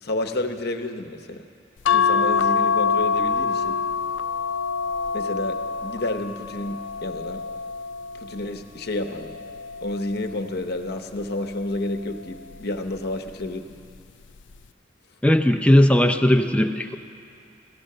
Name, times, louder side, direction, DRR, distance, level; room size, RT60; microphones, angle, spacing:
voice 1, 0.0-1.4 1.9-3.8 5.1-7.4 8.1-9.3 9.8-13.8, left 2 dB, 60° left, 5 dB, 0.9 m, -30 dB
sound 1, 1.9-8.5 9.1-10.5 11.8-12.2 12.5-12.6, left 6 dB, 90° left, 0.4 m, -25 dB
voice 2, 15.2-17.0, left 1 dB, 5° left, 6 dB, 0.6 m, -17 dB
16.5 x 13.0 x 6.7 m, 2.5 s
head